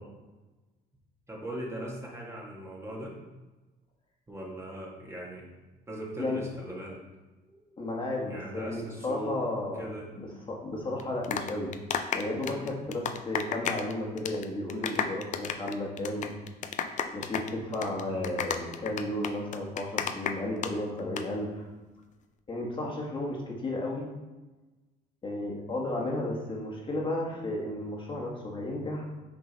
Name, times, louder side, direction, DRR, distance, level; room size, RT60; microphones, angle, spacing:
voice 1, 1.3-3.2 4.3-5.5 5.9-7.0 8.3-9.4 9.7-10.1 18.1-18.3, right 1 dB, 15° right, -3 dB, 1.4 m, -39 dB
voice 2, 7.4-9.9 10.1-11.7 12.1-16.3 17.1-21.7 22.5-24.1 25.2-29.0, left 1 dB, 30° left, -1 dB, 1.5 m, -33 dB
sound 1, 11.0-13.9 14.2-14.5 14.7-20.7 21.0-21.2, left 7 dB, 45° left, 0.5 m, -32 dB
6.3 x 3.8 x 3.9 m, 1.1 s
cardioid pair, 110°, 17 cm